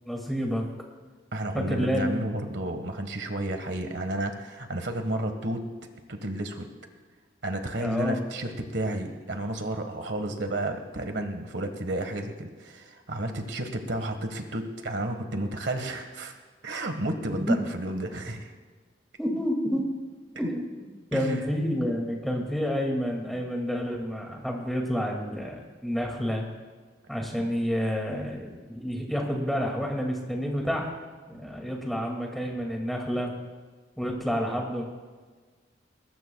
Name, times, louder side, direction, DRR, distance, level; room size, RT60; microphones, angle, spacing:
voice 1, 0.1-0.7 1.5-2.2 7.8-8.2 17.5-17.6 19.2-19.9 20.4-26.5 27.1-30.9 31.3-33.3 34.0-34.8, equal, ahead, 0 dB, 2.3 m, -29 dB
voice 2, 1.3-5.6 6.1-6.7 7.4-16.4 16.6-18.5 21.1-21.5, right 1 dB, 85° right, 6 dB, 1.5 m, -32 dB
21.0 x 20.5 x 2.4 m, 1.5 s
head